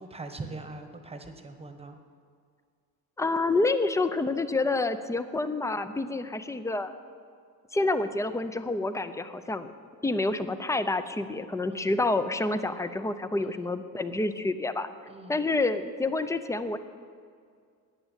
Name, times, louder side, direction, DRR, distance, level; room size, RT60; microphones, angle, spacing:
voice 1, 0.0-2.0 11.7-12.0 13.5-13.8 15.1-15.5, right 3 dB, 15° right, 7 dB, 1.1 m, -42 dB
voice 2, 3.2-6.9 7.7-9.7 10.0-14.9 15.3-16.8, left 2 dB, 10° left, 11 dB, 0.5 m, -28 dB
13.5 x 10.0 x 9.0 m, 2.2 s
cardioid pair, 170°, 36 cm